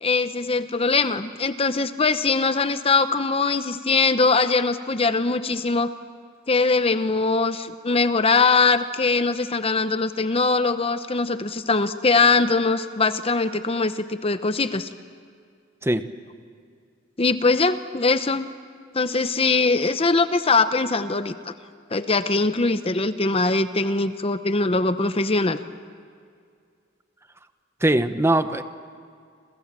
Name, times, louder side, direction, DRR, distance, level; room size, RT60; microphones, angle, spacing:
voice 1, 0.0-5.9 6.5-14.9 17.2-18.5 18.9-21.5 21.9-25.6, left 3 dB, 30° left, 11 dB, 0.8 m, -22 dB
voice 2, 27.8-28.6, right 1 dB, 15° right, 10 dB, 0.9 m, -20 dB
28.0 x 27.5 x 7.5 m, 2.2 s
head